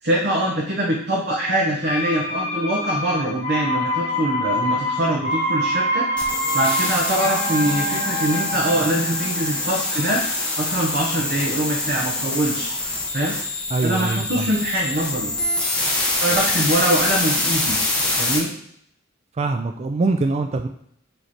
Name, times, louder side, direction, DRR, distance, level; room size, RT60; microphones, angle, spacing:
voice 1, 0.0-12.7 13.1-13.3 13.8-15.3 16.2-17.8 18.2-18.5, right 1 dB, 55° right, -3 dB, 1.0 m, -23 dB
sound 1, 1.8-11.6 11.9-12.0, equal, 35° left, 1.0 m, -26 dB
sound 2, 6.2-18.4, left 2 dB, 5° left, 1.2 m, -25 dB
voice 2, 13.7-14.5 19.4-20.7, right 3 dB, 30° right, 6 dB, 0.3 m, -23 dB
7.8 x 3.1 x 4.2 m, 0.70 s
head